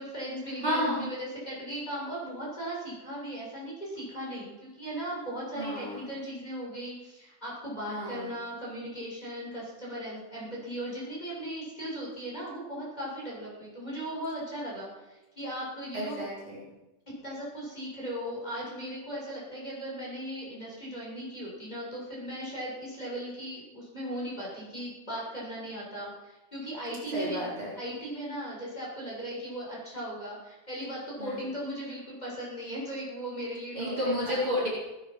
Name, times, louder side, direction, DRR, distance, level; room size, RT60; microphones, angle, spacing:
voice 1, 0.0-16.2 17.1-27.4 27.8-34.5, equal, 10° left, -6 dB, 6.9 m, -37 dB
voice 2, 0.6-1.1 5.6-6.1 7.9-8.3 15.9-16.7 27.1-27.7 31.2-31.4 33.7-34.7, equal, 40° right, -7 dB, 5.1 m, -31 dB
19.0 x 11.5 x 6.2 m, 1.0 s
omnidirectional pair, 3.6 m